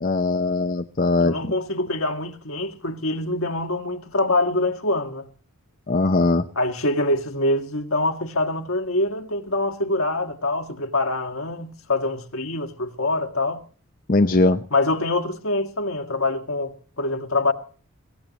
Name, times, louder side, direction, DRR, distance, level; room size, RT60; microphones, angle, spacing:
voice 1, 0.0-1.5 5.9-6.4 14.1-14.6, left 2 dB, 40° left, 0.6 m, -20 dB
voice 2, 1.2-5.2 6.5-13.6 14.7-17.5, left 2 dB, 70° left, 1.7 m, -25 dB
22.5 x 17.5 x 2.9 m
head